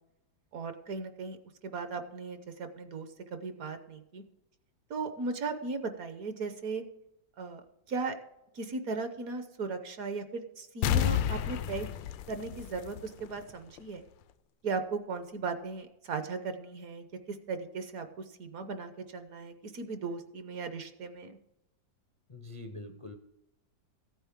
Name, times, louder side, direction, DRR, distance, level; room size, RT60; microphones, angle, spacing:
voice 1, 0.5-1.4 1.6-4.2 4.9-6.8 7.4-7.6 7.9-8.2 8.5-11.9 12.3-14.0 14.6-21.4, right 4 dB, 60° right, 9 dB, 1.1 m, -37 dB
sound 1, 10.8-13.4 13.8-13.9, left 10 dB, 85° left, 1.3 m, -30 dB
voice 2, 22.3-23.1, left 2 dB, 50° left, 5 dB, 0.4 m, -44 dB
14.5 x 9.1 x 3.6 m, 0.90 s
omnidirectional pair, 2.0 m